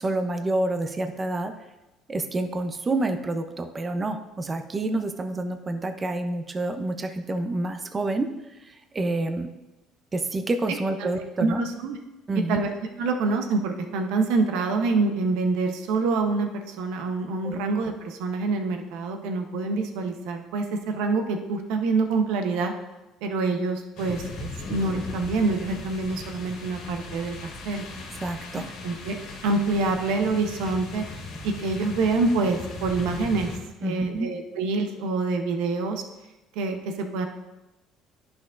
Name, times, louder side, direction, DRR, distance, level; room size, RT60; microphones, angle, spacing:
voice 1, 0.0-1.5 2.1-8.3 8.6-9.5 10.1-11.6 12.3-12.6 17.4-17.6 28.2-28.7 33.8-34.3, right 2 dB, 25° right, 7 dB, 0.6 m, -28 dB
voice 2, 11.4-12.0 12.3-22.7 23.2-27.8 28.8-29.2 29.4-31.0 31.4-33.5 33.8-36.0 36.5-37.3, right 3 dB, 80° right, 5 dB, 0.8 m, -26 dB
sound 1, 24.0-33.6, left 3 dB, 75° left, 1.7 m, -38 dB
11.0 x 6.0 x 2.5 m, 1.0 s
supercardioid pair, 90°, 0 cm